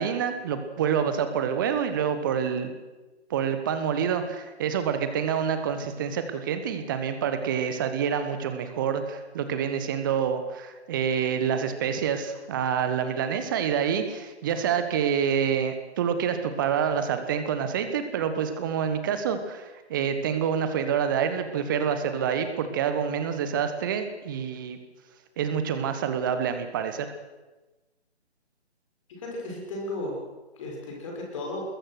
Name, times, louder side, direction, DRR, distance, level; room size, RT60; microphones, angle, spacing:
voice 1, 0.0-2.7 3.3-24.8 25.4-27.1, right 7 dB, 20° right, 9 dB, 1.4 m, -27 dB
voice 2, 29.2-30.1 30.6-31.6, left 2 dB, 30° left, -1 dB, 6.7 m, -34 dB
24.5 x 21.5 x 6.3 m, 1.2 s
figure-of-eight pair, 145°, 33 cm